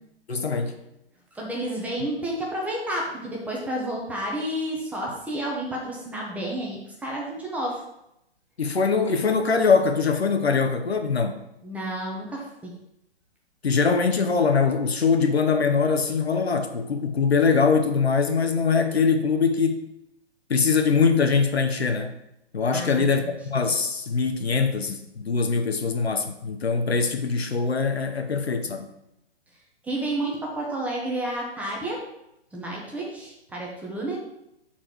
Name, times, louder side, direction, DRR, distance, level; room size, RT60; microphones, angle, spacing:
voice 1, 0.3-0.8 8.6-11.4 13.6-19.9 20.5-22.1 22.5-28.9, left 5 dB, 70° left, 6 dB, 0.9 m, -22 dB
voice 2, 1.3-7.8 11.6-12.7 22.7-23.3 29.8-32.0 32.5-34.3, right 1 dB, 5° right, -3 dB, 0.7 m, -30 dB
6.3 x 4.2 x 4.7 m, 0.82 s
figure-of-eight pair, 125°, 33 cm